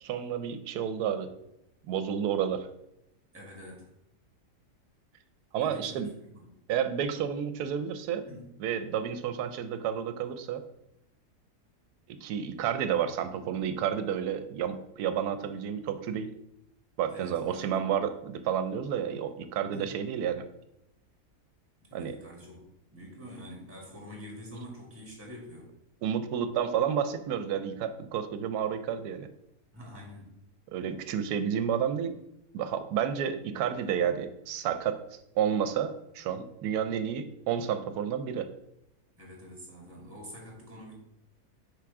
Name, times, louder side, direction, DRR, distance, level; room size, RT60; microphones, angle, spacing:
voice 1, 0.0-1.3 1.8-2.7 5.5-6.1 6.7-8.3 8.6-10.6 12.1-16.3 17.0-20.4 21.9-22.2 26.0-29.3 30.7-32.1 32.5-35.0 35.4-38.5, right 8 dB, 75° right, 9 dB, 1.1 m, -30 dB
voice 2, 3.3-3.9 5.6-6.5 8.3-8.5 17.1-17.9 19.7-19.9 21.8-22.6 22.9-25.7 29.7-30.3 39.2-41.0, equal, 10° right, -2 dB, 1.6 m, -46 dB
5.9 x 3.6 x 4.8 m, 0.81 s
omnidirectional pair, 1.7 m